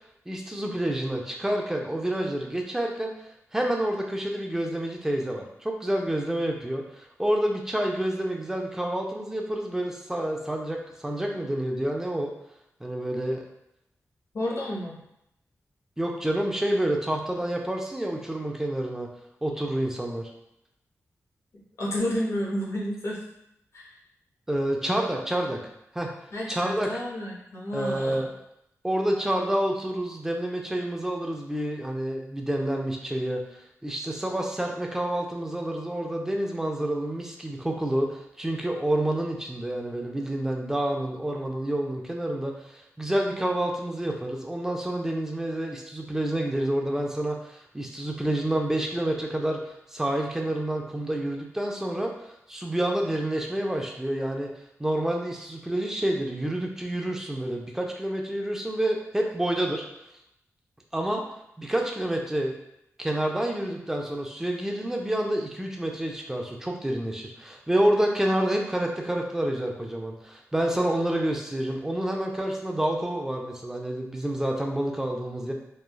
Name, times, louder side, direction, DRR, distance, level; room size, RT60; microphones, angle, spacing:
voice 1, 0.3-3.1 3.5-12.3 12.8-13.4 16.0-19.1 19.4-20.3 24.5-25.6 25.9-26.1 26.5-26.9 27.7-28.3 28.8-33.4 33.8-54.5 54.8-59.8 60.9-61.2 61.6-62.6 63.0-75.5, right 1 dB, 10° right, 1 dB, 0.4 m, -28 dB
voice 2, 14.3-15.0 21.8-23.2 23.7-23.9 26.3-28.2, equal, 60° left, -4 dB, 0.7 m, -30 dB
3.1 x 2.2 x 2.2 m, 0.80 s
wide cardioid pair, 115°, 5 cm